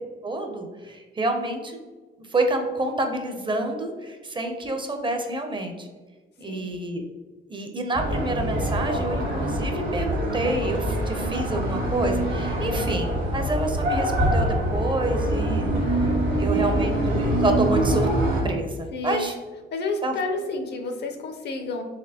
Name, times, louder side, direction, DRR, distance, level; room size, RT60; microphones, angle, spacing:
voice 1, 0.2-1.8 2.2-5.9 6.4-7.0 7.5-16.1 16.4-18.1 18.4-19.3 20.0-20.2, right 2 dB, 25° right, 4 dB, 0.5 m, -28 dB
voice 2, 6.5-6.8 12.6-12.8 16.7-16.9 18.9-19.3 19.7-21.8, left 3 dB, 60° left, 5 dB, 0.6 m, -30 dB
sound 1, 7.9-18.4, right 1 dB, 75° right, 1.4 m, -24 dB
4.1 x 2.9 x 2.8 m, 1.3 s
cardioid pair, 90°, 20 cm